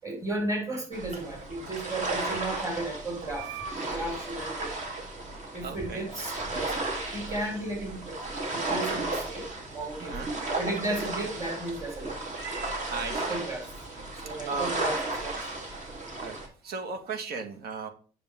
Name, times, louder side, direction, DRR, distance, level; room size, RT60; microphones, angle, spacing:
voice 1, 0.0-4.7 5.5-10.2 10.6-12.2 13.1-13.7 14.1-15.6, right 2 dB, 20° right, 0 dB, 4.7 m, -34 dB
sound 1, 0.9-16.5, right 2 dB, 45° right, 3.2 m, -34 dB
voice 2, 3.3-3.9 4.8-5.0 5.6-6.1 7.4-7.5 9.1-9.2 10.1-10.3 12.3-13.4 14.5-14.7 16.2-16.4 16.6-17.9, right 4 dB, 70° right, 6 dB, 1.7 m, -36 dB
10.0 x 6.6 x 3.7 m, 0.40 s
cardioid pair, 110°, 17 cm